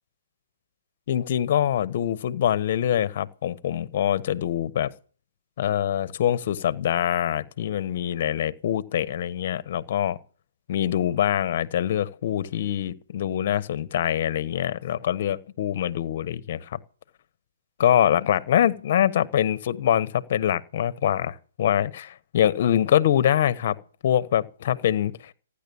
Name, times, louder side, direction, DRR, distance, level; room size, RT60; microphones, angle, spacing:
voice 1, 1.1-4.9 5.6-10.2 10.7-16.8 17.8-25.3, left 10 dB, 50° left, 1.3 m, -24 dB
15.5 x 10.0 x 7.2 m
hypercardioid pair, 150°, 0 cm